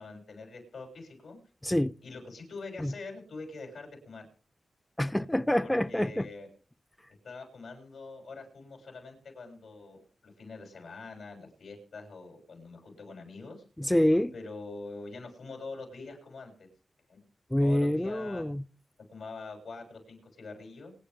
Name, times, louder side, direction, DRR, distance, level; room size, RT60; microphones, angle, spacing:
voice 1, 0.0-1.4 2.0-4.3 5.6-6.5 7.2-13.6 14.3-16.5 17.1-17.2 17.6-18.4 19.1-20.9, left 3 dB, 85° left, 6.9 m, -44 dB
voice 2, 5.0-6.3 13.8-14.3 17.5-18.6, left 1 dB, 10° left, 0.6 m, -26 dB
27.0 x 9.9 x 3.7 m
cardioid pair, 45°, 0 cm